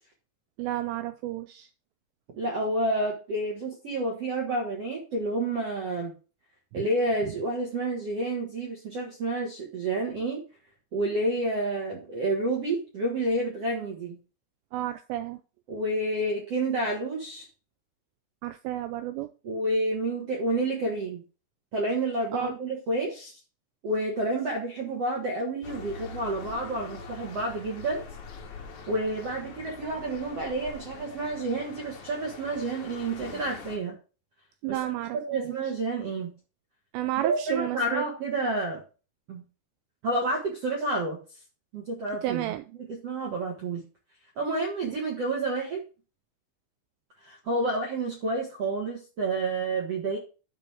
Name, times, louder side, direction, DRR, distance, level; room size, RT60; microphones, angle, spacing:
voice 1, 0.6-1.7 6.7-6.9 14.7-15.4 18.4-19.3 22.3-22.6 34.6-35.6 36.9-38.0 42.2-42.6 44.8-45.0, right 14 dB, 90° right, 2.5 m, -32 dB
voice 2, 2.4-6.1 6.7-10.4 10.9-14.2 15.7-17.5 19.4-21.2 21.7-23.3 23.8-28.0 28.9-33.9 34.7-36.3 37.2-38.8 39.3-39.4 40.0-41.2 41.7-43.8 44.3-45.8 47.2-50.2, right 2 dB, 65° right, 1.5 m, -29 dB
sound 1, 25.6-33.8, left 5 dB, 75° left, 1.8 m, -43 dB
13.5 x 4.5 x 3.4 m
omnidirectional pair, 5.5 m